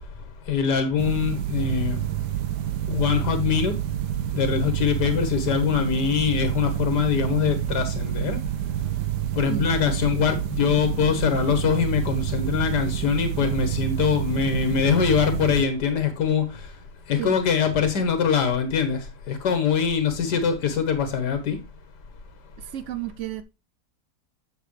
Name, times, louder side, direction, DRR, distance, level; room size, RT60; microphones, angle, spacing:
voice 1, 0.5-2.0 2.9-3.7 4.3-8.4 9.4-16.5 17.1-19.0 19.3-21.6, left 7 dB, 85° left, 1.8 m, -23 dB
sound 1, 1.0-15.7, right 12 dB, 85° right, 1.3 m, -28 dB
voice 2, 22.7-23.4, right 11 dB, 65° right, 0.7 m, -31 dB
8.5 x 6.4 x 3.1 m
omnidirectional pair, 1.7 m